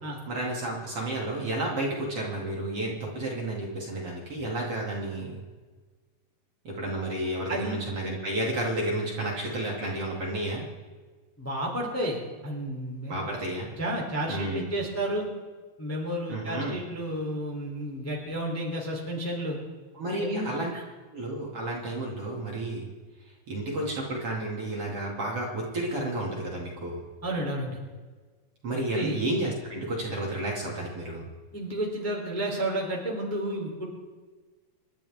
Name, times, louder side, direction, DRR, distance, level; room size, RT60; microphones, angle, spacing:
voice 1, 0.3-5.4 6.6-10.7 13.1-13.7 14.3-14.7 16.3-16.8 20.0-20.7 21.1-22.9 23.5-27.0 28.6-31.2, right 1 dB, 40° right, -3 dB, 3.1 m, -31 dB
voice 2, 7.5-7.8 11.4-13.3 13.8-15.3 15.8-19.6 20.2-20.8 27.2-27.8 28.9-29.2 31.5-33.8, right 1 dB, 5° left, -2 dB, 2.5 m, -31 dB
28.5 x 12.0 x 3.6 m, 1.4 s
omnidirectional pair, 4.3 m